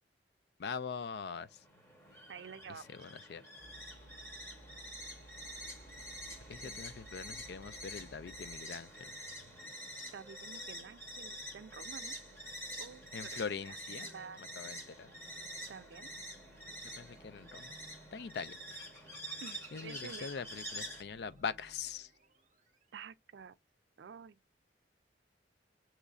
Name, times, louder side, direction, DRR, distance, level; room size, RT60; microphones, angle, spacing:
voice 1, 0.6-1.5 2.9-3.4 6.5-9.0 13.1-14.1 14.6-15.1 17.0-17.7 18.1-18.8 19.7-22.1, left 6 dB, 65° left, 0.4 m, -42 dB
sound 1, 1.3-21.0, equal, 15° left, 1.0 m, -47 dB
voice 2, 2.3-2.9 6.6-6.8 10.1-12.2 12.8-13.8 14.0-14.7 15.7-16.1 19.4-20.3 22.9-23.6 24.0-24.4, right 6 dB, 80° right, 0.4 m, -50 dB
sound 2, 3.6-8.6, right 1 dB, 50° left, 1.3 m, -57 dB
sound 3, 5.4-22.9, right 2 dB, 45° right, 0.8 m, -62 dB
6.6 x 3.1 x 2.4 m
head